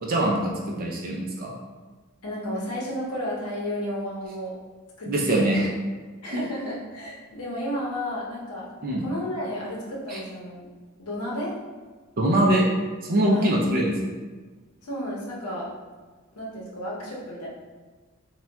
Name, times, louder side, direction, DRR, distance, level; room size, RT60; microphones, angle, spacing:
voice 1, 0.0-0.4 0.8-1.5 5.1-5.7 6.3-6.4 8.8-9.0 10.1-10.2 12.2-12.7 13.1-13.9, right 1 dB, 40° right, -2 dB, 0.4 m, -22 dB
voice 2, 2.2-4.5 5.0-5.6 6.2-8.7 9.0-10.7 11.0-11.5 13.3-13.6 14.8-15.7 16.3-17.5, equal, 85° left, -4 dB, 0.8 m, -32 dB
3.8 x 2.2 x 2.2 m, 1.3 s
head